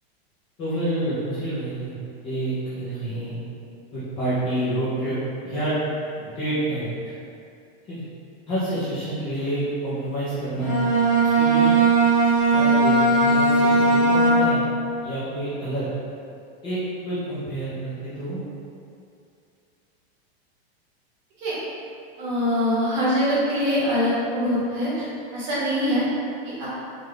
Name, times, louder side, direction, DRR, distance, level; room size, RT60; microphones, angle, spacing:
voice 1, 0.6-2.0 2.2-3.4 3.9-5.2 5.4-5.8 6.2-7.1 7.9-8.0 8.5-10.9 11.2-11.7 12.5-14.6 15.0-15.9 16.6-18.4, right 1 dB, 15° left, -13 dB, 0.6 m, -28 dB
Bowed string instrument, 10.5-14.8, right 2 dB, 40° left, 1.0 m, -18 dB
voice 2, 22.2-25.1 25.3-26.0 26.4-26.7, equal, 45° right, -9 dB, 1.3 m, -23 dB
3.7 x 2.4 x 3.2 m, 2.5 s
supercardioid pair, 170°, 31 cm